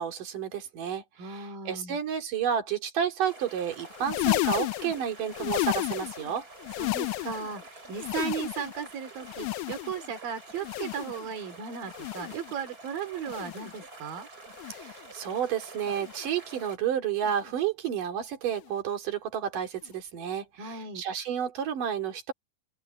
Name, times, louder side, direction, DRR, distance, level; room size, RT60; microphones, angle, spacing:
voice 1, 0.0-6.4 14.7-22.3, right 8 dB, 70° right, 4.7 m, -31 dB
voice 2, 1.2-2.0 6.8-14.3 20.6-21.0, right 7 dB, 90° right, 4.5 m, -36 dB
sound 1, 3.2-16.8, right 2 dB, 25° right, 6.2 m, -48 dB
sound 2, 3.9-6.3 6.6-7.6 7.9-8.9 9.2-10.1 10.5-11.3 11.8-12.5 13.2-13.8 14.5-15.1 15.8-16.3 17.2-17.5 18.5-18.7 19.8-19.9, left 19 dB, 80° left, 2.0 m, -33 dB
open air
omnidirectional pair, 3.9 m